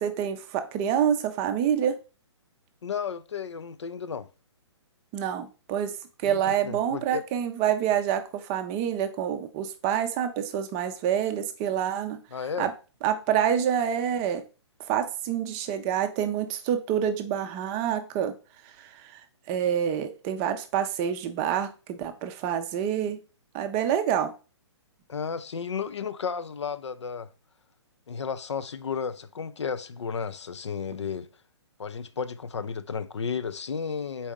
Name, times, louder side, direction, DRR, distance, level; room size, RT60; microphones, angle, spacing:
voice 1, 0.0-1.9 5.1-5.9 6.2-12.2 12.6-12.7 13.0-14.4 14.9-18.3 18.8-19.2 19.5-23.2 23.5-24.3, right 9 dB, 25° right, 0.4 m, -27 dB
voice 2, 2.8-4.3 6.2-7.2 12.3-12.7 25.1-27.3 28.1-31.3 31.8-34.3, left 6 dB, 75° left, 0.4 m, -33 dB
4.1 x 3.5 x 3.5 m
figure-of-eight pair, 125°, 15 cm